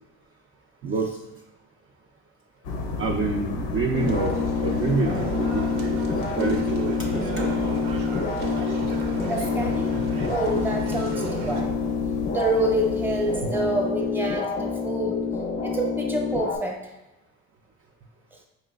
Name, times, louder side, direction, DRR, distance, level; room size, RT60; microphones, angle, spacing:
sound 1, 2.6-14.0, left 2 dB, 90° left, 0.6 m, -34 dB
voice 1, 3.0-4.3 4.6-7.0 7.4-7.7 13.4-13.5, right 4 dB, 35° right, 0 dB, 0.4 m, -27 dB
sound 2, 3.9-16.6, left 5 dB, 25° left, 0.4 m, -27 dB
sound 3, 3.9-11.6, right 4 dB, 85° right, 0.8 m, -36 dB
voice 2, 9.3-9.9 10.2-11.7 12.3-15.3 15.6-16.8, right 1 dB, 5° right, 1 dB, 0.7 m, -27 dB
4.5 x 3.0 x 2.3 m, 0.99 s
supercardioid pair, 80°, 36 cm